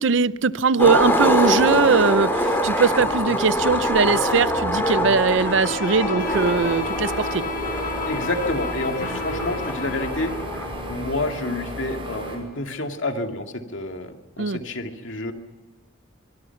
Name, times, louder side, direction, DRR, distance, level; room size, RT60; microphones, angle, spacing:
voice 1, 0.0-7.4 14.4-14.6, right 4 dB, 65° right, 0.6 m, -20 dB
Skateboard, 0.8-11.0, equal, 10° left, 3.1 m, -24 dB
Bowed string instrument, 5.3-10.5, left 3 dB, 40° left, 1.5 m, -32 dB
sound 1, 6.2-12.4, equal, 25° right, 5.8 m, -34 dB
voice 2, 8.1-10.3 10.9-15.3, left 2 dB, 70° left, 2.2 m, -29 dB
24.5 x 22.5 x 5.8 m
head